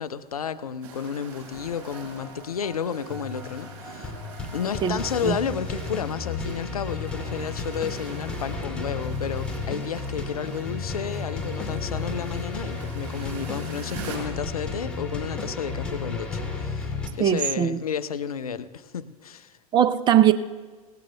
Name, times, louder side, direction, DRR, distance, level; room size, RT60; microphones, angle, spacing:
voice 1, 0.0-4.1 4.5-19.5, left 7 dB, 70° left, 12 dB, 0.7 m, -32 dB
sound 1, 0.8-14.2, right 7 dB, 50° right, 6.1 m, -45 dB
Orchestral Music, 1.5-17.1, left 4 dB, 5° left, 2.6 m, -33 dB
voice 2, 4.8-5.4 17.2-17.8 19.7-20.3, right 10 dB, 25° right, 13 dB, 0.7 m, -20 dB
25.5 x 18.0 x 2.3 m, 1.4 s
figure-of-eight pair, 90°, 19 cm